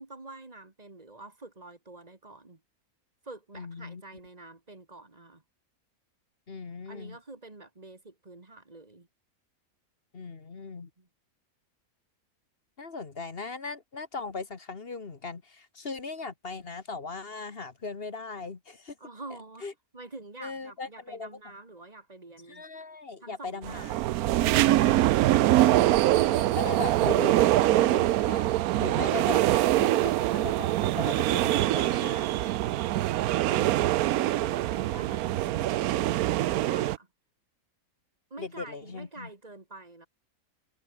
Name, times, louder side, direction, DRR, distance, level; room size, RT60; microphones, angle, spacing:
voice 1, 0.0-2.6 3.2-5.4 6.9-9.1 11.0-11.1 19.0-19.7 19.9-22.7 23.2-24.0 34.3-37.1 38.3-40.1, right 2 dB, 25° right, 2.2 m, -47 dB
voice 2, 3.5-4.0 6.5-7.2 10.1-10.9 12.8-19.0 19.6-19.7 20.4-21.4 22.5-23.9 24.9-25.3 25.8-32.7 33.5-33.9 38.4-39.3, left 4 dB, 40° left, 1.7 m, -39 dB
sound 1, 23.6-37.0, right 15 dB, 80° right, 1.1 m, -24 dB
omnidirectional pair, 1.5 m